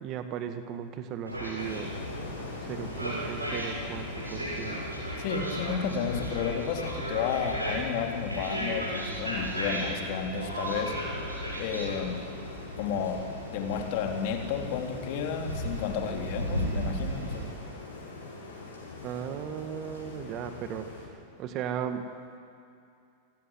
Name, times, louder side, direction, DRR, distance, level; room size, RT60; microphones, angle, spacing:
voice 1, 0.0-1.9 2.7-5.0 19.0-20.9 21.4-22.0, right 8 dB, 35° right, 8 dB, 1.9 m, -36 dB
sound 1, 1.3-17.5, right 1 dB, 85° right, 6.8 m, -35 dB
sound 2, 1.6-21.1, left 3 dB, 70° left, 7.2 m, -43 dB
voice 2, 5.2-11.0 11.6-12.3 12.8-17.5, left 7 dB, 50° left, 3 dB, 3.6 m, -32 dB
29.0 x 17.0 x 9.7 m, 2.5 s
figure-of-eight pair, 90°, 0 cm